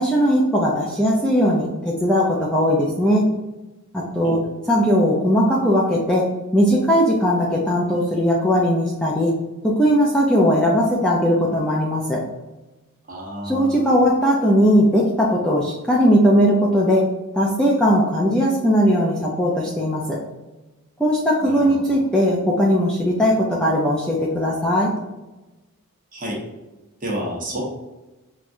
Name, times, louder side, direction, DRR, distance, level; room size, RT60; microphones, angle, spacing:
voice 1, 0.0-3.3 3.9-4.4 4.7-9.3 9.6-12.2 13.4-17.0 17.3-20.2 21.0-24.9, equal, 5° left, -4 dB, 0.4 m, -18 dB
voice 2, 13.1-14.0 21.4-22.0 26.1-26.4 27.0-27.6, equal, 35° right, -3 dB, 1.0 m, -30 dB
5.8 x 2.3 x 2.6 m, 1.1 s
head